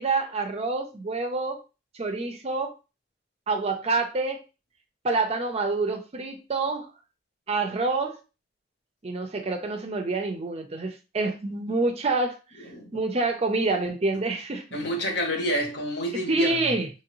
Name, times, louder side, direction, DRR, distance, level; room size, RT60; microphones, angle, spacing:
voice 1, 0.0-1.6 1.9-2.7 3.5-4.4 5.0-6.9 7.5-8.2 9.0-12.4 12.9-14.6 16.3-16.9, right 3 dB, 35° right, 0.5 m, -27 dB
voice 2, 12.6-12.9 14.7-16.8, equal, 65° left, 1.0 m, -29 dB
3.0 x 2.5 x 2.9 m
head